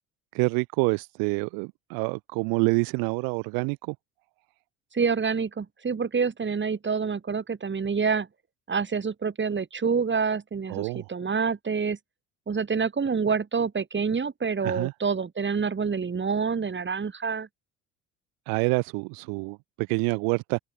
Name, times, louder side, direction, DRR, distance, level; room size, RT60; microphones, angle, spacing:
voice 1, 0.3-4.0 10.7-11.1 14.6-14.9 18.5-20.6, right 32 dB, 70° right, 2.1 m, -27 dB
voice 2, 4.9-8.3 8.7-12.0 12.5-17.5, right 5 dB, 30° right, 7.4 m, -27 dB
open air
hypercardioid pair, 65°, 36 cm